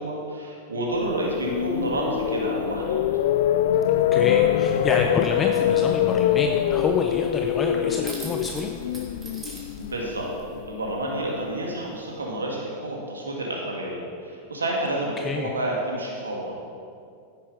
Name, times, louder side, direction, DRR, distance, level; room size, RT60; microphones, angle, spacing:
voice 1, 0.0-3.0 9.8-10.3 10.7-16.6, right 1 dB, 85° right, -2 dB, 2.0 m, -29 dB
sound 1, 1.1-11.2, left 10 dB, 65° left, 0.4 m, -24 dB
voice 2, 4.1-8.7 15.2-15.5, left 4 dB, 25° left, 3 dB, 0.8 m, -28 dB
sound 2, 5.6-10.6, right 1 dB, 20° right, 2.9 m, -43 dB
10.0 x 9.9 x 5.1 m, 2.3 s
hypercardioid pair, 95°, 0 cm